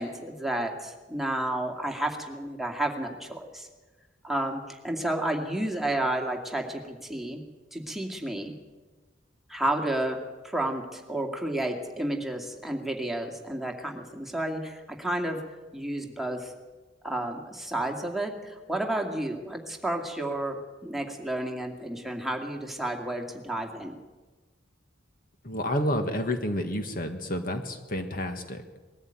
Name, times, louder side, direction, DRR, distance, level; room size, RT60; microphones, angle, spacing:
voice 1, 0.0-3.7 4.2-7.4 7.7-8.5 9.5-10.2 10.4-15.4 15.7-16.5 17.0-24.0, right 1 dB, ahead, 1 dB, 2.2 m, -31 dB
voice 2, 25.4-28.6, left 1 dB, 50° left, 6 dB, 1.7 m, -30 dB
21.0 x 13.5 x 9.1 m, 1.3 s
head